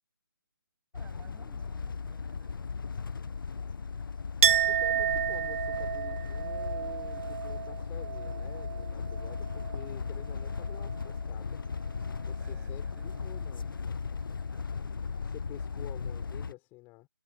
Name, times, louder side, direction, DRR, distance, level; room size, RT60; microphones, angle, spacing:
sound 1, 0.9-16.5, left 5 dB, 65° left, 0.5 m, -37 dB
voice 1, 0.9-3.9 12.0-12.1 12.4-13.8 14.3-15.2, right 9 dB, 10° right, 7.7 m, -61 dB
Chink clink, 4.4-9.9 10.2-11.1, right 9 dB, 35° right, 1.2 m, -31 dB
voice 2, 4.7-11.6 12.3-13.7 15.2-17.1, left 23 dB, 15° left, 3.6 m, -49 dB
figure-of-eight pair, 145°, 12 cm